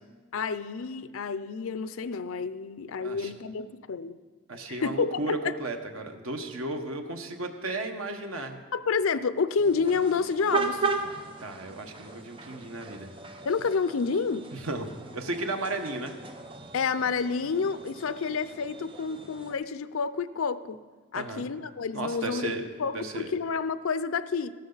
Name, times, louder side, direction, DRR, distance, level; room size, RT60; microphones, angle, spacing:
voice 1, 0.3-4.2 4.7-5.6 8.7-10.9 13.4-14.5 16.7-20.8 21.1-22.5 22.8-24.5, left 5 dB, 85° left, 14 dB, 0.5 m, -29 dB
voice 2, 3.0-3.3 4.5-8.6 11.4-13.1 14.5-14.9 15.1-16.1 21.1-21.5 21.9-22.6 22.9-23.3, right 2 dB, 90° right, 5 dB, 1.2 m, -34 dB
sound 1, 9.6-19.5, right 4 dB, 25° right, 0.7 m, -36 dB
14.5 x 12.5 x 4.0 m, 1.4 s
head